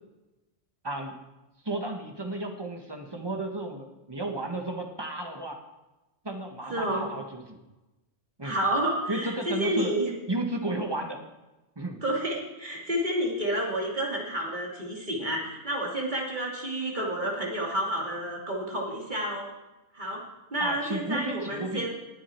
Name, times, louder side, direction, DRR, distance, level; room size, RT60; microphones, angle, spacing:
voice 1, 0.8-1.2 1.6-5.6 6.2-7.6 8.4-8.5 9.1-9.9 10.3-11.2 11.7-12.0 20.6-21.9, right 2 dB, 20° right, 3 dB, 1.4 m, -33 dB
voice 2, 6.7-7.0 8.4-10.1 12.0-19.5 19.9-20.2 20.5-21.9, right 1 dB, 35° right, -2 dB, 2.9 m, -30 dB
19.5 x 8.5 x 4.5 m, 1.0 s
omnidirectional pair, 1.4 m